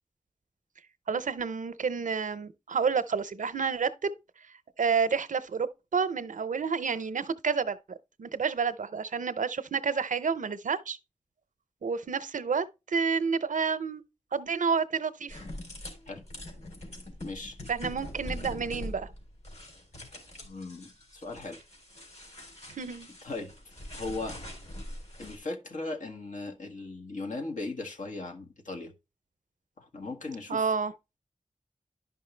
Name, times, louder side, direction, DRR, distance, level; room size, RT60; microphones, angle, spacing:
voice 1, 1.1-4.2 4.8-7.8 8.2-11.0 11.8-14.0 14.3-15.4 17.7-19.1 22.8-23.1 30.5-30.9, right 5 dB, 85° right, 0.6 m, -29 dB
sound 1, 15.3-25.4, left 1 dB, 60° left, 3.7 m, -43 dB
voice 2, 17.2-17.6 20.4-21.6 23.2-23.5 23.9-24.4 25.2-28.9 29.8-30.7, left 3 dB, 85° left, 1.4 m, -38 dB
11.0 x 5.5 x 3.2 m
wide cardioid pair, 65°, 13 cm